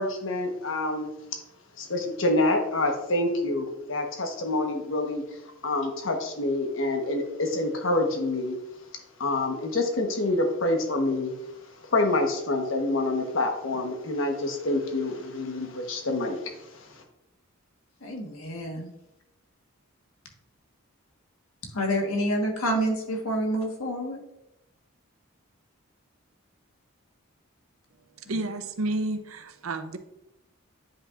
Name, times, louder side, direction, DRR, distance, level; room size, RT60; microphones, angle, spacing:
voice 1, 0.0-1.4 1.8-5.4 5.6-8.6 9.2-11.3 11.8-17.0, left 2 dB, 65° left, 4 dB, 1.2 m, -27 dB
voice 2, 18.0-18.9 21.7-24.2 28.3-28.4, equal, 90° left, 2 dB, 1.4 m, -28 dB
voice 3, 28.3-30.0, right 2 dB, 80° right, 8 dB, 0.7 m, -30 dB
9.2 x 5.4 x 2.5 m, 0.87 s
head